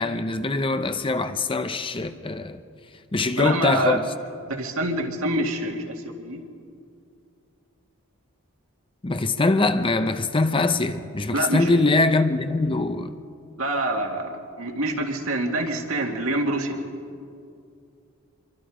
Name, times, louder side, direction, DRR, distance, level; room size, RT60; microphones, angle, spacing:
voice 1, 0.0-2.6 3.1-4.0 9.0-13.1, left 3 dB, 25° left, 0.7 m, -23 dB
voice 2, 3.4-4.0 4.5-6.4 11.3-11.8 13.6-16.8, right 1 dB, 65° right, 2.2 m, -26 dB
26.0 x 24.0 x 5.0 m
head